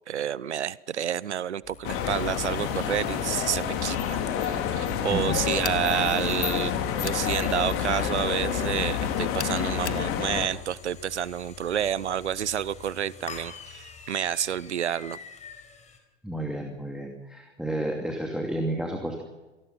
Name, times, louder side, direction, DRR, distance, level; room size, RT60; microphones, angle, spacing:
voice 1, 0.1-15.2, right 9 dB, 75° right, 22 dB, 0.7 m, -29 dB
sound 1, 1.6-16.0, left 6 dB, 20° left, 4.4 m, -46 dB
sound 2, 1.8-10.5, left 8 dB, 40° left, 3.0 m, -28 dB
sound 3, 5.6-5.9 7.0-7.3 9.4-10.1, left 8 dB, 75° left, 1.3 m, -36 dB
voice 2, 16.2-19.2, right 1 dB, ahead, 2 dB, 2.6 m, -31 dB
27.0 x 18.5 x 5.8 m, 1.2 s
figure-of-eight pair, 95°, 35 cm